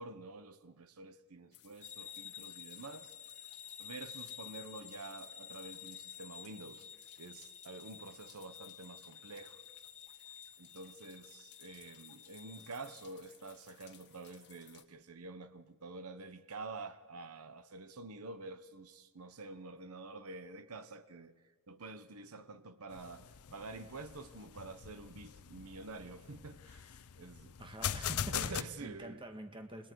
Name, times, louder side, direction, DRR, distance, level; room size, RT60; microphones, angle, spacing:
voice 1, 0.0-3.1 3.8-6.9 7.2-9.6 10.6-21.3 21.7-27.6 28.3-29.2, right 3 dB, 85° right, 0.9 m, -48 dB
sound 1, 1.5-14.8, left 11 dB, 55° left, 1.5 m, -62 dB
sound 2, 1.8-13.0, left 8 dB, 35° left, 0.8 m, -51 dB
sound 3, 22.9-28.6, left 9 dB, 85° left, 0.6 m, -41 dB
voice 2, 27.6-29.9, right 1 dB, 25° right, 1.6 m, -46 dB
29.5 x 20.0 x 4.7 m
head